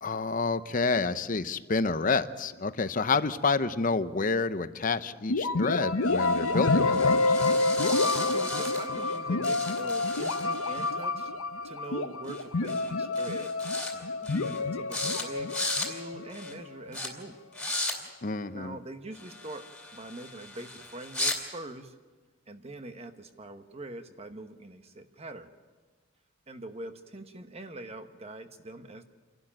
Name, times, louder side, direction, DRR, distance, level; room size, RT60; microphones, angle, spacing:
voice 1, 0.0-7.4 18.2-18.8, left 4 dB, 40° left, 12 dB, 0.7 m, -29 dB
sound 1, 5.3-17.0, left 3 dB, 85° left, 0.9 m, -28 dB
sound 2, 6.0-9.2 9.4-10.9 12.3-12.4 12.7-12.9 13.2-13.9 14.2-14.6 14.9-15.2 15.5-15.9 16.3-16.5 16.9-17.1 17.5-18.0 19.1-21.4, left 1 dB, 5° left, 2.8 m, -36 dB
voice 2, 7.7-11.3 11.6-13.5 13.9-17.4 18.5-19.7 19.9-22.0 22.5-25.5 26.5-29.1, right 2 dB, 30° right, 8 dB, 1.1 m, -43 dB
28.5 x 12.0 x 8.8 m, 1.4 s
head